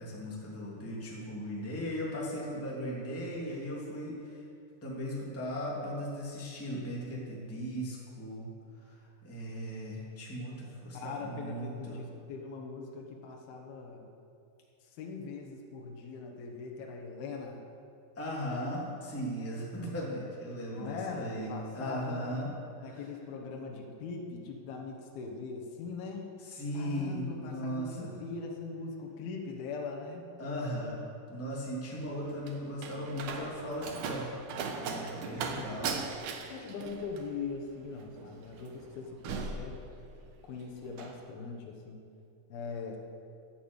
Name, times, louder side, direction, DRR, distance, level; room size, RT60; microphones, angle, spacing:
voice 1, 0.0-4.4 4.8-8.5 8.8-12.0 18.2-22.5 22.8-23.0 23.7-23.9 26.4-28.1 30.4-34.3 34.7-36.0, equal, 5° left, -4 dB, 1.9 m, -37 dB
voice 2, 10.9-14.1 14.8-17.6 20.7-22.3 22.8-26.3 26.7-30.3 35.3-36.1 36.5-39.8 40.4-42.0 42.5-43.0, left 4 dB, 70° left, 0 dB, 3.1 m, -41 dB
Slam, 31.9-40.4 40.7-41.2, right 5 dB, 70° right, 2.1 m, -39 dB
15.0 x 8.8 x 8.1 m, 2.6 s
omnidirectional pair, 4.7 m